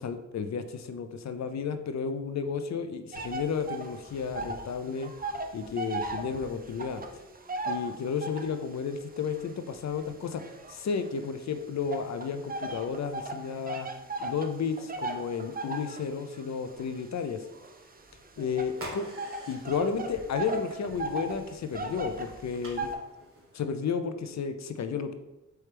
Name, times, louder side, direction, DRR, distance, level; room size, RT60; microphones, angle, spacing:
voice 1, 0.0-5.1 5.5-7.2 7.7-13.9 14.2-17.4 18.4-19.1 19.5-22.9 23.5-25.1, left 6 dB, 60° left, 9 dB, 0.4 m, -32 dB
sound 1, 3.1-4.7 5.0-8.6 9.2-11.3 11.9-23.0, right 2 dB, 30° right, 0.5 m, -37 dB
sound 2, 18.7-23.9, right 1 dB, 45° right, 1.3 m, -48 dB
4.4 x 3.1 x 3.3 m, 1.0 s
cardioid pair, 60°, 31 cm